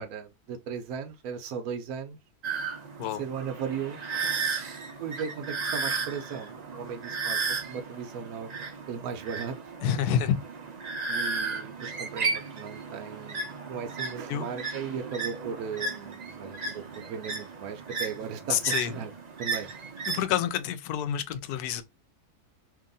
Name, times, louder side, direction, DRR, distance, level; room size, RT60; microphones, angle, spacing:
voice 1, 0.0-2.2 3.2-4.0 5.0-9.6 11.1-19.1 19.4-19.7, right 7 dB, 75° right, 1.0 m, -37 dB
sound 1, 2.4-20.2, right 4 dB, 55° right, 0.4 m, -34 dB
voice 2, 9.8-10.4 14.3-14.5 18.5-18.9 20.1-21.8, left 9 dB, 80° left, 1.1 m, -28 dB
2.9 x 2.7 x 3.8 m
omnidirectional pair, 1.6 m